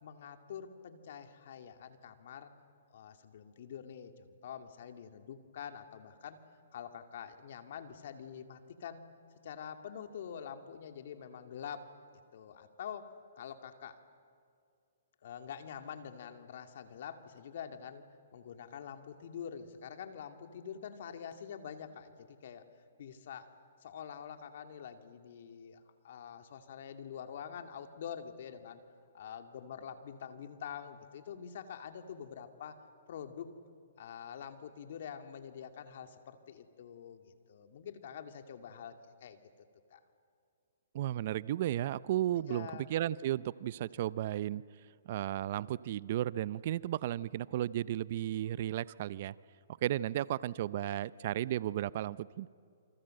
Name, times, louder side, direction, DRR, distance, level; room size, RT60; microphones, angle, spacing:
voice 1, 0.0-2.5 2.9-6.4 6.7-9.0 9.4-11.9 12.3-14.0 15.2-18.0 18.3-22.7 23.0-23.5 23.8-28.8 29.1-33.5 34.0-38.9 39.2-39.4 39.9-40.0 42.4-42.9, left 8 dB, 60° left, 6 dB, 2.4 m, -46 dB
voice 2, 40.9-44.6 45.1-49.3 49.8-52.5, right 13 dB, 50° right, 19 dB, 0.6 m, -34 dB
28.0 x 25.5 x 7.8 m, 2.3 s
hypercardioid pair, 140°, 0 cm